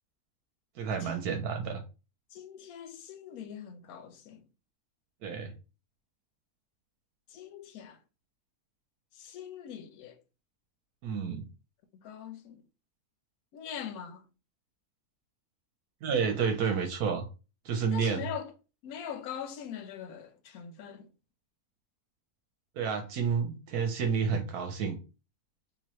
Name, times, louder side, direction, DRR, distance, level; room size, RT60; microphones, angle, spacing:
voice 1, 0.8-1.8 5.2-5.5 11.0-11.4 16.0-17.2 17.6-18.3 22.8-25.0, right 6 dB, 80° right, 1.2 m, -30 dB
voice 2, 2.3-4.4 7.3-8.0 9.1-10.2 11.9-12.6 13.5-14.2 17.9-18.5 18.8-21.1, left 8 dB, 70° left, 1.1 m, -42 dB
3.6 x 2.9 x 3.0 m
omnidirectional pair, 1.6 m